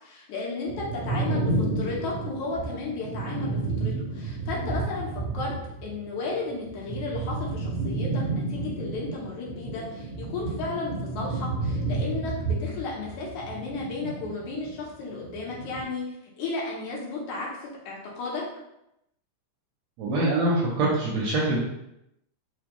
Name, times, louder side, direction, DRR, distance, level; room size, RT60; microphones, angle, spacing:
voice 1, 0.0-5.5 5.8-16.1 16.4-18.4, left 3 dB, 75° left, -3 dB, 2.1 m, -34 dB
sound 1, 0.6-6.0 6.2-14.8 15.1-15.8, right 2 dB, 40° right, 0.8 m, -31 dB
voice 2, 20.0-21.6, right 2 dB, 75° right, -3 dB, 1.6 m, -24 dB
5.0 x 2.1 x 2.9 m, 0.84 s
omnidirectional pair, 3.5 m